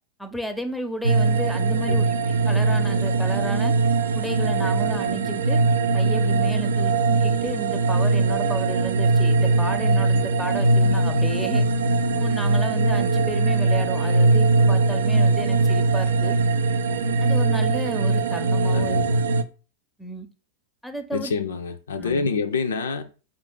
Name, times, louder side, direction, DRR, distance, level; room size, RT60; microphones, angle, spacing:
voice 1, 0.2-2.1 2.4-3.7 4.1-5.6 5.9-11.6 12.1-16.4 17.2-19.0 20.0-20.3 20.8-21.3 22.0-22.3, right 1 dB, ahead, 0.6 m, -32 dB
sound 1, 1.0-19.4, right 3 dB, 70° right, 0.3 m, -21 dB
voice 2, 18.7-19.2 21.1-23.1, left 4 dB, 65° left, 0.4 m, -27 dB
5.0 x 2.5 x 3.6 m
figure-of-eight pair, 90°, 0 cm